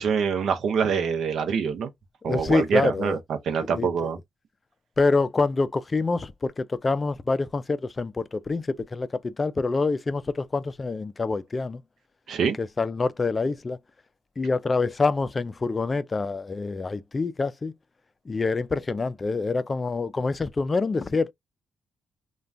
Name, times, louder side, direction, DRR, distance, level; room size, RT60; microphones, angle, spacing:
voice 1, 0.0-1.9 2.2-4.2 12.3-12.6, right 6 dB, 75° right, 0.6 m, -25 dB
voice 2, 2.3-3.2 3.7-4.1 5.0-11.8 12.6-13.8 14.4-17.7 18.3-21.3, left 3 dB, 30° left, 0.3 m, -26 dB
2.4 x 2.3 x 3.2 m
cardioid pair, 85°, 0 cm